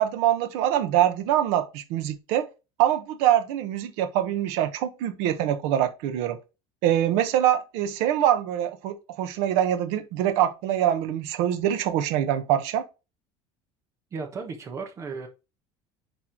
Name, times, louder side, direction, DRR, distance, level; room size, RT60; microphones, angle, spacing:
voice 1, 0.0-2.5 2.8-6.4 6.8-12.8, right 11 dB, 70° right, 1.4 m, -24 dB
voice 2, 14.1-15.3, right 4 dB, 25° right, 1.2 m, -35 dB
10.0 x 3.6 x 4.5 m
cardioid pair, 175°, 12 cm